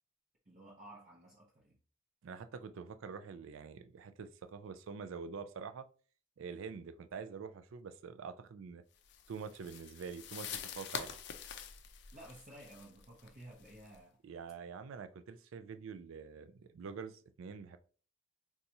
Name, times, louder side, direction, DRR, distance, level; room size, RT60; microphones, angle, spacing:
voice 1, 0.4-1.8 12.1-14.2, right 1 dB, 35° right, 0.6 m, -54 dB
voice 2, 2.2-5.9 6.4-8.8 9.3-11.2 14.2-17.8, right 5 dB, 85° right, 0.4 m, -46 dB
sound 1, 9.1-14.0, left 8 dB, 55° left, 0.4 m, -46 dB
4.0 x 2.3 x 2.7 m
head